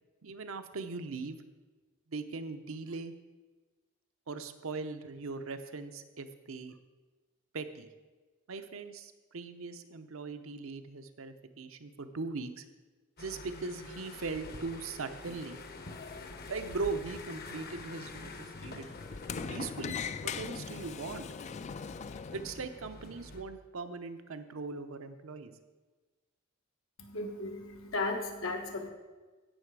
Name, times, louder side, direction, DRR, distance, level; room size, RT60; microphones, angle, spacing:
voice 1, 0.2-1.4 2.1-3.1 4.3-6.7 7.5-7.9 8.5-12.6 13.2-15.6 16.5-18.9 19.5-21.3 22.3-25.5, right 4 dB, 80° right, 9 dB, 0.8 m, -40 dB
sound 1, 13.2-23.4, left 2 dB, 50° left, 1.0 m, -47 dB
Sliding door, 15.6-22.6, left 6 dB, 35° left, 0.3 m, -42 dB
voice 2, 27.0-28.9, left 3 dB, 80° left, 3 dB, 1.4 m, -35 dB
15.5 x 6.0 x 4.7 m, 1.3 s
head